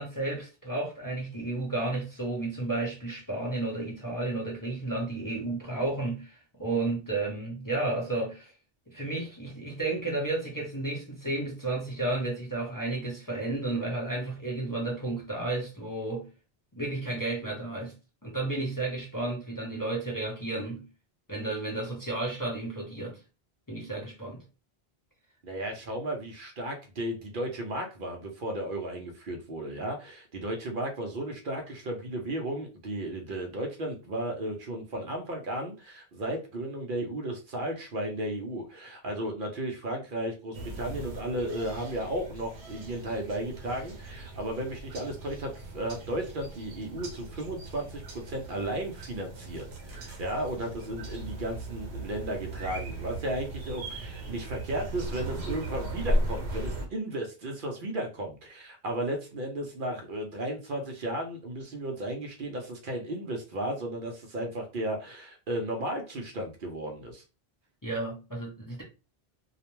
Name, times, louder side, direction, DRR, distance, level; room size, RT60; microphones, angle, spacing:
voice 1, 0.0-8.5 8.9-16.3 16.8-17.9 18.2-20.9 21.3-23.2 23.7-24.4 67.8-68.8, right 2 dB, 25° left, 0.6 m, -32 dB
voice 2, 25.4-67.2, right 1 dB, 60° right, 0.7 m, -34 dB
sound 1, 40.5-56.9, right 1 dB, 85° right, 1.0 m, -37 dB
2.4 x 2.1 x 2.9 m
omnidirectional pair, 1.1 m